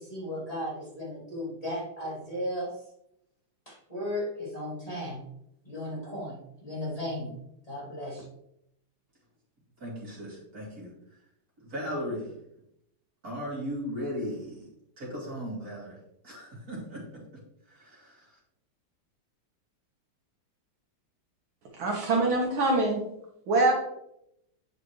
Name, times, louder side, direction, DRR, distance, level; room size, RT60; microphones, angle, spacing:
voice 1, 0.0-2.7 3.7-5.3 5.6-7.3 7.7-8.3, left 1 dB, 15° left, -7 dB, 2.3 m, -35 dB
voice 2, 9.8-10.9 11.6-12.4 13.2-14.7 15.0-16.0 16.2-17.2 17.7-18.4, equal, 40° right, -4 dB, 3.0 m, -37 dB
voice 3, 21.8-23.0 23.5-23.7, right 2 dB, 65° right, -1 dB, 2.0 m, -24 dB
8.8 x 5.0 x 3.1 m, 0.78 s
omnidirectional pair, 2.4 m